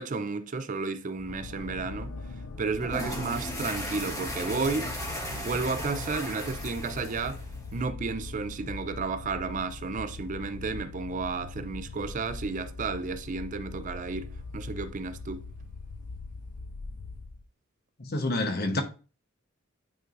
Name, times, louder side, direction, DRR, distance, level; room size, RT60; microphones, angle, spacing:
voice 1, 0.0-2.1 2.6-4.9 5.3-7.4 7.7-15.5, right 4 dB, 40° right, 0.5 m, -32 dB
sound 1, 1.2-17.4, left 3 dB, 75° left, 0.6 m, -41 dB
sound 2, 2.8-7.8, equal, 15° left, 1.3 m, -36 dB
voice 2, 18.0-18.8, left 2 dB, 50° left, 1.1 m, -28 dB
9.2 x 4.6 x 2.6 m
head